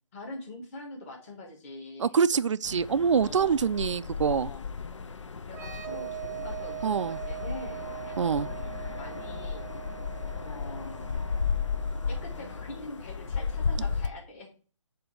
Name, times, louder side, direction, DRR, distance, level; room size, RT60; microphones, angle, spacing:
voice 1, 0.1-2.2 3.1-3.7 4.3-4.7 5.5-9.7 10.4-11.2 12.1-14.5, left 2 dB, 25° left, 1.7 m, -44 dB
voice 2, 2.0-4.5 6.8-7.2 8.2-8.5, right 6 dB, 70° right, 0.4 m, -25 dB
sound 1, 2.6-14.1, left 5 dB, 70° left, 0.6 m, -34 dB
sound 2, 5.5-13.0, right 14 dB, 10° right, 0.9 m, -42 dB
6.9 x 2.8 x 5.5 m
figure-of-eight pair, 155°, 16 cm